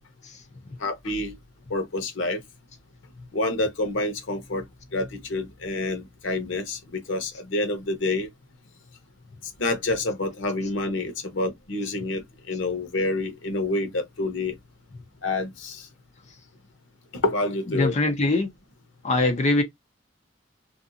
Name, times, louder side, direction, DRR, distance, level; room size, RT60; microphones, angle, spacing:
voice 1, 0.8-1.3 1.7-2.4 3.3-4.6 4.9-8.3 9.6-12.2 12.5-14.5 15.2-15.9 17.2-18.1, left 2 dB, 85° left, 0.9 m, -28 dB
voice 2, 17.7-18.5 19.0-19.6, left 2 dB, 40° left, 0.7 m, -22 dB
2.6 x 2.3 x 2.6 m
head